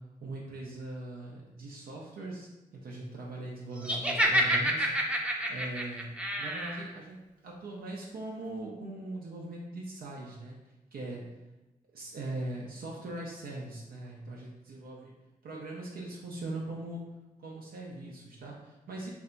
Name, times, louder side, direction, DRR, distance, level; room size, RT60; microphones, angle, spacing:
voice 1, 0.2-4.9 5.5-10.6 10.9-11.3 11.9-15.1 15.4-17.0 17.4-19.1, right 2 dB, 80° right, -3 dB, 0.5 m, -40 dB
Laughter, 3.8-6.8, right 1 dB, 5° right, 0.5 m, -28 dB
2.6 x 2.2 x 3.8 m, 1.0 s
cardioid pair, 50°, 15 cm